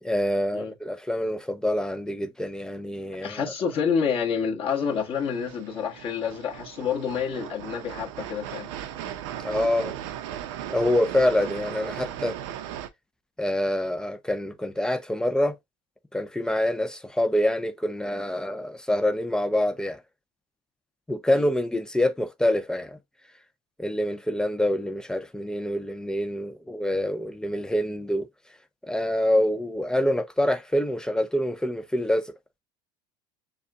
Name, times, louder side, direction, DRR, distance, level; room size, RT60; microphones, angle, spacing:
voice 1, 0.0-3.5 9.4-9.9 10.7-12.3 13.4-15.5 16.1-20.0 21.1-23.0 23.8-28.3 28.8-32.3, left 1 dB, 5° left, 0.5 m, -26 dB
voice 2, 3.2-8.7 21.3-21.4, left 6 dB, 40° left, 1.6 m, -28 dB
sound 1, 4.7-12.9, right 11 dB, 85° right, 0.8 m, -37 dB
6.9 x 2.3 x 2.5 m
supercardioid pair, 130°, 15 cm